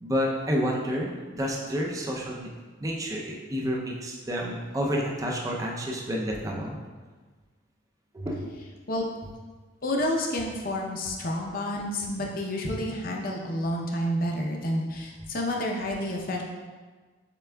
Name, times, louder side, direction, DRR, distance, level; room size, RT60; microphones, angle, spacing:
voice 1, 0.0-2.5 2.8-6.8 8.1-8.5, equal, 20° right, -2 dB, 0.5 m, -29 dB
voice 2, 9.8-16.4, left 1 dB, 50° left, 0 dB, 0.6 m, -29 dB
6.8 x 3.5 x 2.3 m, 1.4 s
head